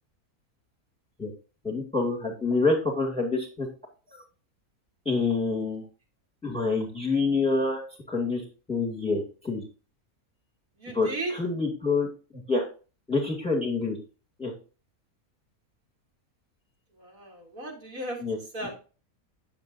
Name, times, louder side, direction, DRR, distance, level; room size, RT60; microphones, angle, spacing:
voice 1, 1.6-3.7 4.1-4.2 5.1-5.8 6.4-7.8 8.1-8.4 8.7-9.6 10.9-12.1 12.3-12.6 13.1-14.0 14.4-14.5 18.2-18.4, left 3 dB, 5° left, 0 dB, 2.3 m, -27 dB
voice 2, 10.8-11.3 17.0-18.2 18.5-18.8, right 2 dB, 70° right, -1 dB, 3.0 m, -35 dB
9.5 x 7.4 x 2.7 m, 0.34 s
omnidirectional pair, 1.6 m